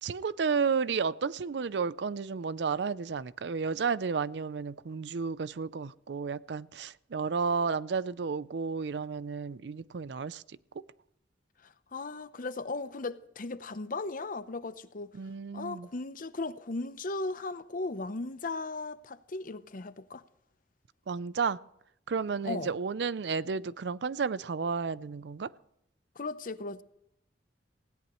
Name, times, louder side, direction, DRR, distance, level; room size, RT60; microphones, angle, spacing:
voice 1, 0.0-10.6 15.1-15.9 21.1-21.6 22.1-25.5, right 5 dB, 70° right, 0.5 m, -32 dB
voice 2, 11.6-15.2 15.5-20.2 22.4-22.7 26.2-26.8, left 3 dB, 50° left, 0.8 m, -37 dB
19.0 x 17.0 x 3.1 m
head